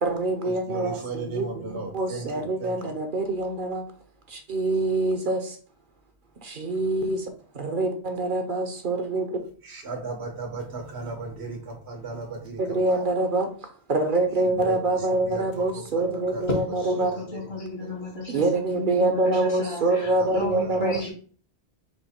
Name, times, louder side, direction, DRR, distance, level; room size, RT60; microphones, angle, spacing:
voice 1, 0.0-3.8 4.3-5.6 6.4-7.3 7.5-9.4 12.6-13.5 13.9-17.2 18.3-21.0, right 2 dB, 55° right, 5 dB, 0.8 m, -25 dB
voice 2, 0.7-2.7 9.6-12.6 12.9-13.0 14.5-14.8 15.2-15.4 16.3-16.5 17.3-17.4 17.8-18.0 20.2-20.9, right 3 dB, 80° right, 3 dB, 1.4 m, -35 dB
voice 3, 16.9-18.4 18.8-21.1, left 3 dB, 65° left, 0 dB, 1.8 m, -33 dB
4.5 x 2.5 x 4.2 m, 0.42 s
omnidirectional pair, 1.1 m